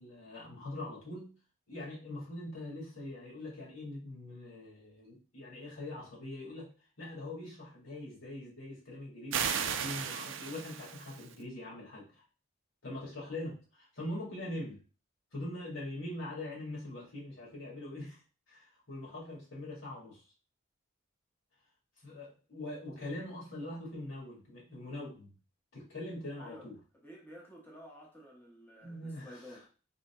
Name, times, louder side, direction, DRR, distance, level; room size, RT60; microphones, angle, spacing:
voice 1, 0.0-1.3 1.7-6.7 7.0-12.2 12.8-14.8 15.3-18.2 18.5-20.2 22.0-25.3 25.7-26.8 28.8-29.6, left 1 dB, 85° left, -4 dB, 1.9 m, -43 dB
sound 1, 9.3-11.3, right 7 dB, 70° right, 0.4 m, -35 dB
voice 2, 26.4-26.7 27.0-29.7, equal, 10° left, -3 dB, 0.9 m, -52 dB
4.1 x 3.9 x 2.2 m, 0.35 s
head